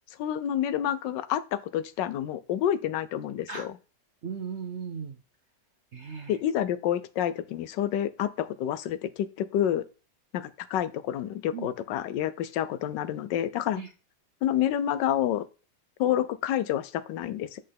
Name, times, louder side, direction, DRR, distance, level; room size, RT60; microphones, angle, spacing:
voice 1, 0.2-3.7 6.3-9.8 10.3-13.8 14.4-15.4 16.0-17.6, left 11 dB, 75° left, 14 dB, 1.2 m, -28 dB
voice 2, 4.2-5.2 5.9-6.4 11.5-11.7 13.8-13.9, right 6 dB, 60° right, 5 dB, 0.7 m, -36 dB
7.7 x 5.4 x 3.4 m, 0.33 s
omnidirectional pair, 2.0 m